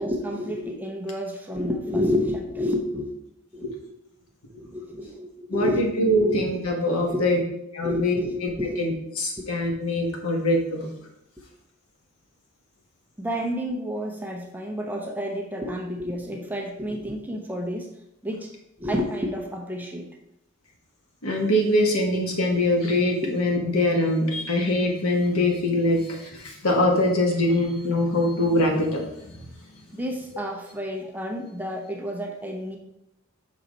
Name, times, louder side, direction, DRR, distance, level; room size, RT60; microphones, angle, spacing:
voice 1, 0.0-3.2 3.5-3.7 4.5-5.9 6.3-6.4 7.1-7.3 7.8-8.8 13.2-17.9 18.2-18.5 18.8-20.1 29.9-32.8, left 1 dB, 10° right, 1 dB, 0.6 m, -30 dB
voice 2, 5.5-7.4 7.7-8.1 8.8-10.9 21.2-29.0, left 1 dB, 85° left, 1 dB, 1.4 m, -23 dB
5.7 x 3.9 x 5.1 m, 0.83 s
head